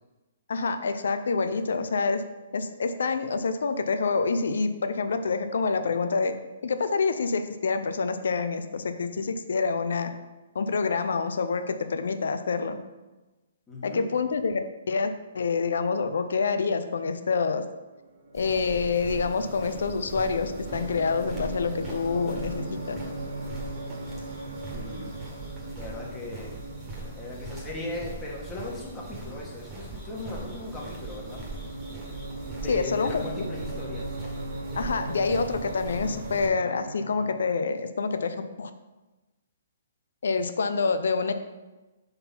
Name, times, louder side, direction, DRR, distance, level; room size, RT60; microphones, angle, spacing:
voice 1, 0.5-2.2 2.5-6.4 6.6-10.1 10.5-12.8 13.8-14.6 14.9-17.6 18.3-23.0 32.7-33.2 34.7-38.7 40.2-41.3, left 4 dB, 80° left, 9 dB, 0.6 m, -27 dB
voice 2, 13.7-14.1 24.7-25.1 25.8-26.5 27.2-31.4 32.6-34.2, left 2 dB, 10° left, -4 dB, 1.3 m, -37 dB
sound 1, 17.9-37.4, right 2 dB, 85° right, 1.4 m, -39 dB
sound 2, 18.3-36.5, right 3 dB, 15° right, 1.6 m, -41 dB
5.9 x 4.1 x 5.5 m, 1.1 s
hypercardioid pair, 160°, 0 cm